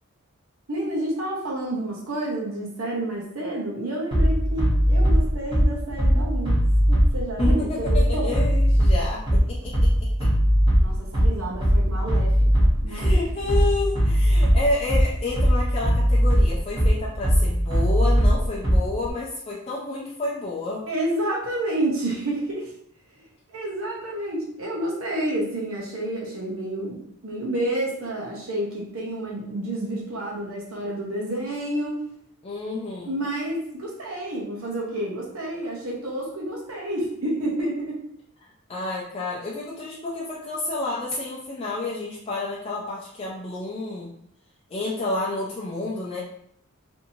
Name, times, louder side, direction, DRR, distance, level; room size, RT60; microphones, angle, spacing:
voice 1, 0.7-6.5 6.9-8.3 10.8-13.2 20.9-22.7 23.5-32.0 33.0-38.0, right 1 dB, 75° right, -4 dB, 0.7 m, -29 dB
Bass drum, 4.1-19.1, equal, 25° right, 1.0 m, -20 dB
voice 2, 7.4-10.3 12.9-20.8 32.4-33.1 38.7-44.1 44.7-46.2, left 2 dB, 30° left, -5 dB, 0.4 m, -30 dB
2.8 x 2.6 x 2.6 m, 0.68 s
head